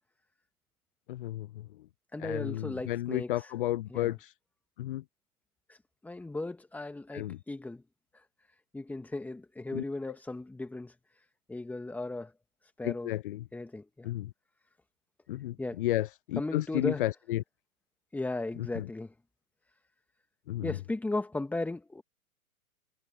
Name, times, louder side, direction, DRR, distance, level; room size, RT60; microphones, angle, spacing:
voice 1, 1.1-1.7 2.2-4.3 4.8-5.0 7.1-7.4 9.7-9.8 12.8-13.4 14.0-14.3 15.3-17.4 18.8-18.9 20.5-20.8, left 15 dB, 40° left, 0.5 m, -32 dB
voice 2, 2.1-3.5 3.9-4.1 5.7-7.8 8.1-8.2 8.7-12.3 12.6-13.1 13.5-14.1 15.6-15.8 16.4-17.1 18.1-19.1 20.6-22.0, left 2 dB, 5° left, 1.5 m, -36 dB
figure-of-eight pair, 110°, 44 cm